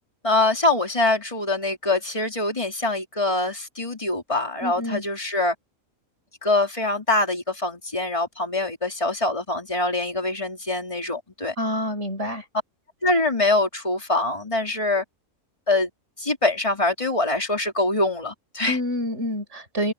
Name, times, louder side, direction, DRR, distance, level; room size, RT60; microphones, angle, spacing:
voice 1, 0.2-5.5 6.4-11.5 13.0-15.0 15.7-15.9 16.2-18.8, left 2 dB, 20° left, 4.0 m, -24 dB
voice 2, 4.6-5.0 11.6-12.4 18.6-19.9, left 1 dB, 55° right, 8.6 m, -27 dB
omnidirectional pair, 1.5 m